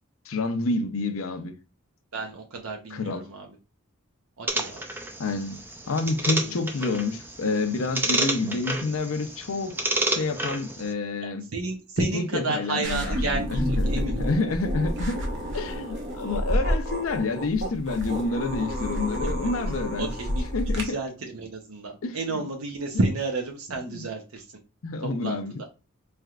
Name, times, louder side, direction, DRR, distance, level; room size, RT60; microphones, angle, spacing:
voice 1, 0.3-1.5 2.9-3.2 5.2-5.6 5.9-9.8 10.1-11.5 12.0-13.2 13.5-15.2 15.5-21.0 22.0-22.4 23.9-24.0 24.8-25.5, left 3 dB, 75° left, 0.6 m, -28 dB
voice 2, 2.1-3.5 4.4-4.8 6.4-6.6 11.2-14.3 20.0-20.4 20.8-24.5 25.0-25.4, right 3 dB, 85° right, 0.8 m, -31 dB
sound 1, 4.5-10.9, right 2 dB, 10° right, 0.4 m, -30 dB
sound 2, 12.8-20.8, equal, 55° right, 0.9 m, -29 dB
4.4 x 3.4 x 2.4 m
head